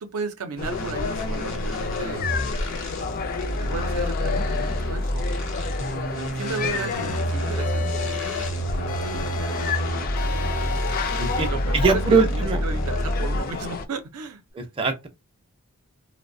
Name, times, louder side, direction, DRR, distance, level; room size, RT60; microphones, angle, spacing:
voice 1, 0.0-2.3 3.6-5.4 6.0-8.2 8.8-9.4 11.3-14.7, right 4 dB, 80° right, 0.5 m, -34 dB
sound 1, 0.6-13.6, equal, 60° left, 0.8 m, -28 dB
sound 2, 0.6-13.9, left 4 dB, 40° left, 0.3 m, -31 dB
sound 3, 6.4-7.2 7.6-8.5 8.9-9.8 10.2-11.5, left 4 dB, 90° left, 0.6 m, -34 dB
voice 2, 11.7-12.6 14.6-15.1, right 4 dB, 25° right, 0.5 m, -22 dB
2.6 x 2.0 x 2.5 m
head